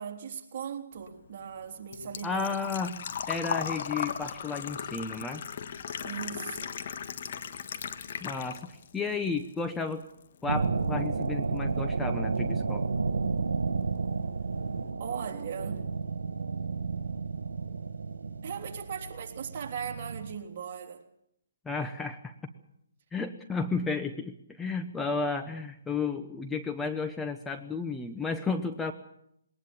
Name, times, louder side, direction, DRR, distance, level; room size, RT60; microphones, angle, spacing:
voice 1, 0.0-2.6 6.0-6.8 15.0-15.9 18.4-21.0, right 7 dB, 40° right, 3.4 m, -38 dB
Engine / Trickle dribble / Fill (with liquid), 1.0-8.9 9.2-10.2 10.5-10.6 12.5-12.6 12.8-13.1 13.5-13.6 13.8-13.9, left 7 dB, 50° left, 1.5 m, -37 dB
voice 2, 2.2-3.0 3.3-5.4 8.2-10.0 10.4-12.9 21.6-22.3 23.1-28.9, left 4 dB, 5° left, 1.0 m, -33 dB
sound 1, 10.4-20.3, right 4 dB, 85° right, 1.8 m, -32 dB
21.0 x 19.0 x 7.3 m
hypercardioid pair, 150°, 0 cm